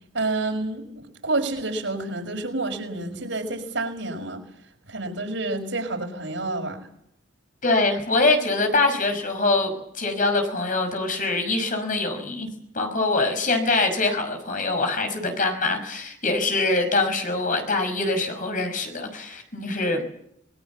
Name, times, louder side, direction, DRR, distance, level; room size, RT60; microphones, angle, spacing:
voice 1, 0.1-0.9 1.2-4.4 4.9-6.9, right 2 dB, 90° right, 3 dB, 5.9 m, -28 dB
voice 2, 7.6-12.5 12.7-20.0, left 3 dB, 45° left, 5 dB, 5.8 m, -24 dB
26.5 x 21.5 x 7.3 m, 0.72 s
head